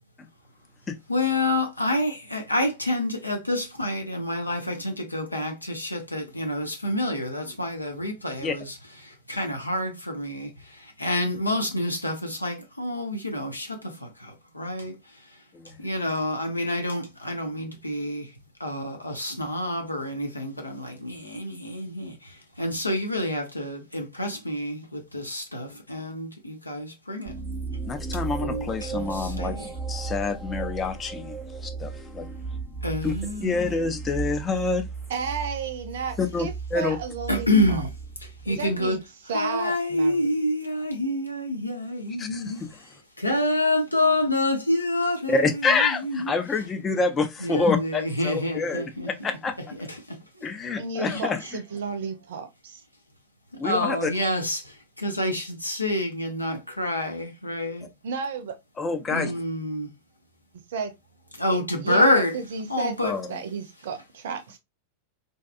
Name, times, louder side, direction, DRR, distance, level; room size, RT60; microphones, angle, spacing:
voice 1, 1.1-8.7 9.0-14.9 15.8-18.3 18.6-27.4 28.4-29.7 32.8-33.7 37.3-37.9 38.5-39.0 39.3-42.6 43.2-46.3 47.4-49.1 49.9-50.2 51.1-51.2 53.6-57.9 59.1-59.9 61.4-62.3 62.7-63.1, left 1 dB, 85° left, 0.6 m, -28 dB
voice 2, 15.5-15.9 27.9-29.6 29.9-31.4 31.6-32.3 33.0-33.1 33.4-34.9 36.2-37.0 42.2-42.7 45.3-49.6 50.4-51.4 53.6-54.1 58.8-59.3 63.0-63.3, left 4 dB, 20° left, 0.6 m, -27 dB
sound 1, 27.3-38.8, right 4 dB, 10° right, 0.9 m, -35 dB
voice 3, 35.1-37.9 38.4-40.3 50.8-52.8 58.0-58.6 60.7-60.9 61.5-63.0 63.3-64.6, right 5 dB, 60° right, 0.6 m, -33 dB
2.7 x 2.3 x 2.4 m
figure-of-eight pair, 90°, 0 cm